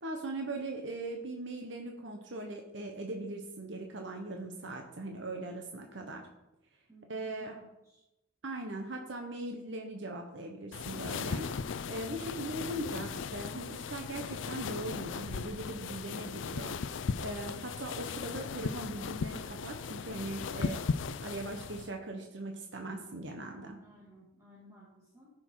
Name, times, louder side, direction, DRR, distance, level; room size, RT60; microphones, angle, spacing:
voice 1, 0.0-6.3 7.1-7.5 8.4-16.7 17.2-20.9 21.2-23.8, right 2 dB, 65° right, 3 dB, 1.1 m, -40 dB
voice 2, 6.9-8.0 23.7-25.3, equal, 15° right, -7 dB, 2.4 m, -57 dB
sound 1, 10.7-21.9, left 5 dB, 70° left, 0.4 m, -37 dB
14.0 x 6.3 x 4.8 m, 0.93 s
head